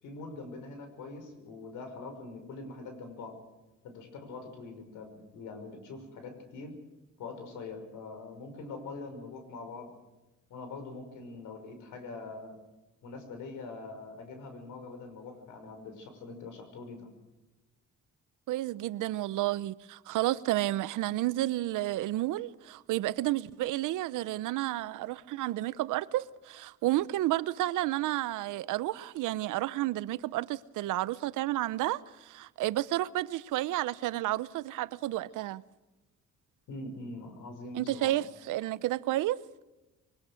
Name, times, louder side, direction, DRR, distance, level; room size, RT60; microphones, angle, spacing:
voice 1, 0.0-3.4 3.8-6.7 7.2-9.9 10.5-12.6 13.0-17.1 36.7-38.1, left 3 dB, 85° left, 5.7 m, -43 dB
voice 2, 18.5-35.6 37.7-39.4, right 15 dB, 85° right, 0.8 m, -31 dB
23.5 x 20.5 x 6.6 m
cardioid pair, 90°, 30 cm